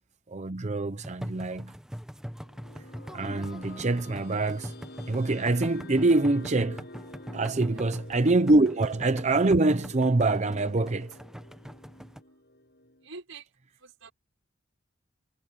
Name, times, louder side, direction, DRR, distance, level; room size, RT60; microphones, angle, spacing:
voice 1, 0.3-1.7 3.1-4.7 5.1-6.9 7.3-11.2, right 2 dB, 35° right, 0.7 m, -25 dB
sound 1, 1.0-12.2, equal, 5° right, 1.2 m, -42 dB
sound 2, 2.3-13.1, left 1 dB, 55° left, 6.8 m, -48 dB
voice 2, 13.0-13.5 13.8-14.1, right 4 dB, 90° right, 5.6 m, -46 dB
head